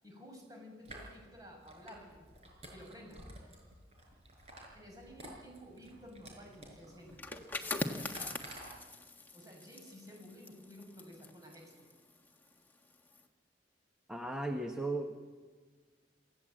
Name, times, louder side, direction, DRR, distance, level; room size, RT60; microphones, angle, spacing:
voice 1, 0.0-2.2 2.7-3.2 4.7-7.2 9.3-11.9, equal, 20° right, 1 dB, 6.9 m, -53 dB
sound 1, 0.9-8.7, right 1 dB, 35° right, 5.7 m, -53 dB
sound 2, 7.1-12.6 12.9-13.2, left 2 dB, 10° left, 1.5 m, -42 dB
voice 2, 14.1-15.2, right 2 dB, 5° right, 3 dB, 1.2 m, -36 dB
27.0 x 16.5 x 7.9 m, 1.5 s
head